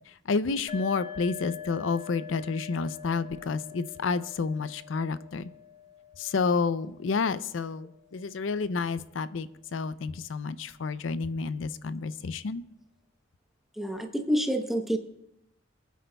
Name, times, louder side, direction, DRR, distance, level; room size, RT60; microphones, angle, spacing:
voice 1, 0.3-5.5 6.2-12.6, left 4 dB, 75° left, 15 dB, 0.5 m, -30 dB
sound 1, 0.7-8.2, left 9 dB, 30° left, 0.9 m, -45 dB
voice 2, 13.8-15.0, equal, ahead, 4 dB, 0.8 m, -28 dB
27.5 x 9.2 x 2.3 m, 0.82 s
head